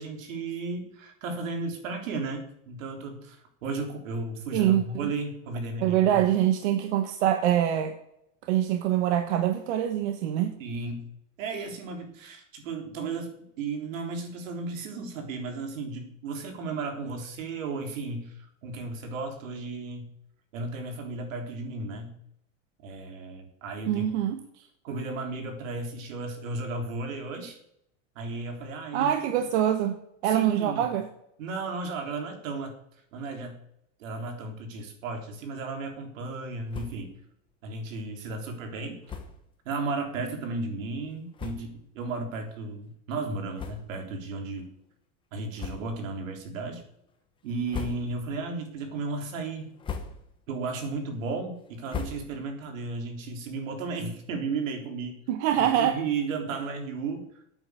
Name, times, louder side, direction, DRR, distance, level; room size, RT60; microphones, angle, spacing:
voice 1, 0.0-6.3 10.6-11.1 11.4-20.1 20.5-22.2 22.8-24.0 24.8-27.6 28.2-29.1 30.2-30.8 31.4-32.8 33.1-33.6 34.0-37.1 37.6-39.0 39.7-44.7 45.3-46.8 47.4-49.7 50.5-55.1 55.6-57.3, right 3 dB, 80° right, 4 dB, 3.7 m, -34 dB
voice 2, 4.5-5.1 5.8-8.0 8.4-10.5 23.8-24.4 28.9-30.0 30.2-31.1 55.3-56.0, right 11 dB, 55° right, 7 dB, 1.2 m, -24 dB
sound 1, 36.7-37.2 37.5-37.6 37.9-38.0 39.0-39.5 40.2-40.3 41.0-41.1 41.3-41.9 42.4-42.6 43.5-44.2 44.5-44.7 45.5-46.1 46.6-47.0 47.5-48.4 48.8-49.2 49.6-50.4 50.8-52.6, left 6 dB, 15° left, 1.2 m, -40 dB
11.0 x 8.9 x 8.4 m, 0.75 s
supercardioid pair, 175°, 39 cm